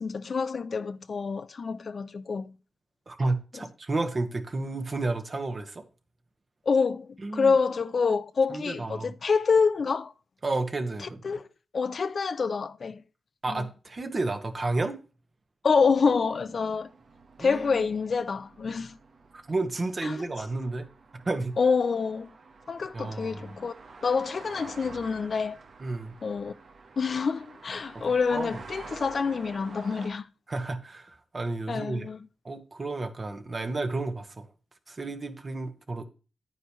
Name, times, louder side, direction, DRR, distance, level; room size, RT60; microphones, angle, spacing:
voice 1, 0.0-2.5 6.7-10.1 11.2-11.5 11.7-13.0 13.5-13.7 15.6-16.9 17.4-19.0 20.0-20.2 21.6-22.3 22.7-23.7 24.0-25.6 26.2-26.5 27.0-30.3 31.7-32.2, left 5 dB, 60° left, 0.5 m, -27 dB
voice 2, 3.1-5.8 7.2-7.5 8.5-9.1 10.4-11.2 13.4-15.0 17.4-17.8 19.5-20.9 21.1-21.5 22.9-23.5 25.8-26.1 27.9-28.6 30.5-32.1 32.4-34.5 34.9-36.0, right 2 dB, 45° right, 1.6 m, -31 dB
sound 1, 15.8-30.1, right 4 dB, 75° right, 1.3 m, -49 dB
10.0 x 9.3 x 3.1 m
cardioid pair, 65°, 0 cm